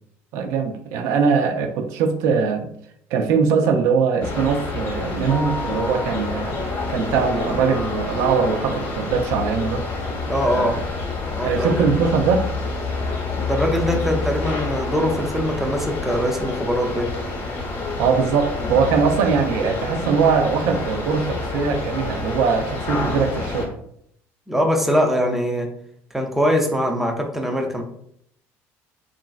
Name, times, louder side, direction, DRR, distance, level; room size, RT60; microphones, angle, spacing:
voice 1, 0.3-2.7 3.1-6.6 6.9-9.8 10.5-10.8 11.4-12.5 18.0-23.8, right 5 dB, 75° right, 6 dB, 0.4 m, -21 dB
sound 1, 4.2-23.7, left 3 dB, 45° left, 0.8 m, -28 dB
voice 2, 10.3-10.7 11.4-11.8 13.4-17.1 24.5-25.7 26.1-27.8, equal, 5° right, 2 dB, 0.4 m, -22 dB
3.0 x 2.5 x 2.3 m, 0.70 s
cardioid pair, 150°, 6 cm